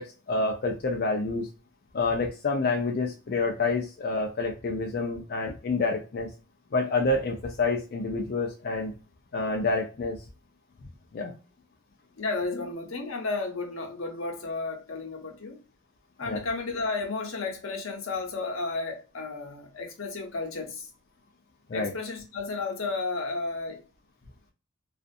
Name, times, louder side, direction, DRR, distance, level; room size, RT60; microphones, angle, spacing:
voice 1, 0.0-1.5 1.9-6.3 6.7-8.9 9.3-10.2 11.1-11.3 16.3-16.4 21.7-21.9, left 3 dB, 45° left, 0.4 m, -28 dB
voice 2, 12.2-15.6 16.2-20.9 21.7-23.8, left 3 dB, 75° left, 0.8 m, -33 dB
2.5 x 2.4 x 2.3 m
head